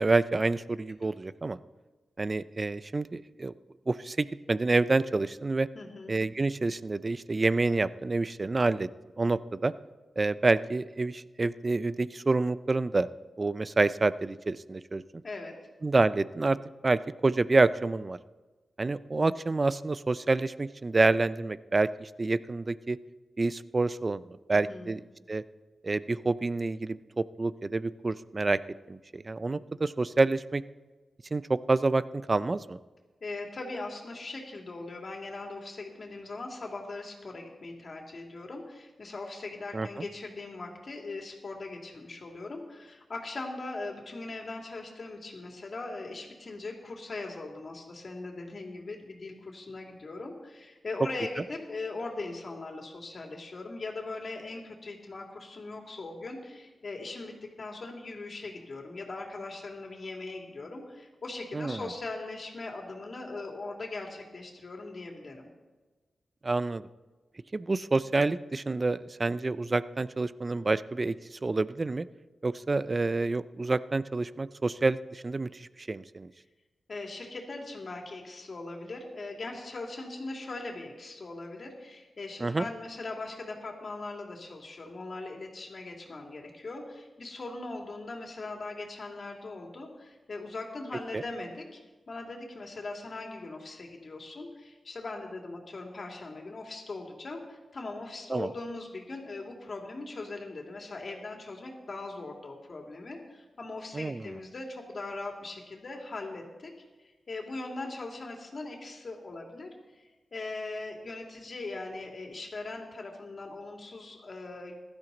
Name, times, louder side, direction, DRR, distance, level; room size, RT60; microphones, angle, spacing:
voice 1, 0.0-1.6 2.2-3.5 3.9-5.7 6.1-8.9 9.2-9.7 10.2-13.1 13.4-15.0 15.8-16.6 16.8-18.2 18.8-23.0 23.4-25.0 25.3-25.4 25.8-28.6 28.9-30.6 31.3-32.8 39.7-39.9 61.5-61.8 66.4-66.9 67.5-72.1 72.4-76.3 82.4-82.7 91.1-91.2 98.3-98.5 103.9-104.3, right 3 dB, 40° right, 16 dB, 0.5 m, -28 dB
voice 2, 5.7-6.2 15.2-15.5 24.5-24.9 33.2-65.5 76.9-91.8 92.1-106.7 107.0-109.7 110.3-114.8, left 3 dB, 55° left, 1 dB, 2.8 m, -40 dB
15.5 x 12.0 x 4.0 m, 1.3 s
cardioid pair, 50°, 0 cm